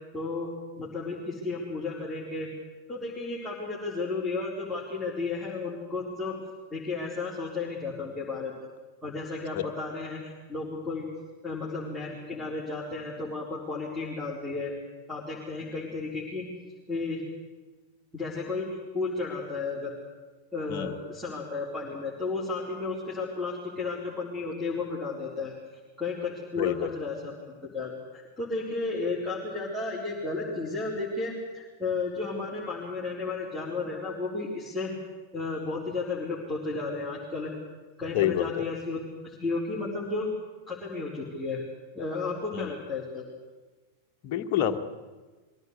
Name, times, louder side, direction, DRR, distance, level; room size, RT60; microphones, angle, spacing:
voice 1, 0.1-0.5 0.8-2.5 2.9-6.4 6.7-8.5 9.0-11.1 11.4-14.7 15.1-16.5 16.9-17.2 18.1-18.7 18.9-19.9 20.5-25.5 26.0-34.9 35.3-37.5 38.0-40.3 40.7-41.6 41.9-43.3, left 3 dB, 5° left, -8 dB, 4.4 m, -33 dB
voice 2, 26.6-26.9 38.1-38.6 42.5-42.8 44.2-44.8, left 11 dB, 45° left, 5 dB, 1.4 m, -27 dB
23.0 x 16.0 x 8.4 m, 1.3 s
figure-of-eight pair, 90°, 0 cm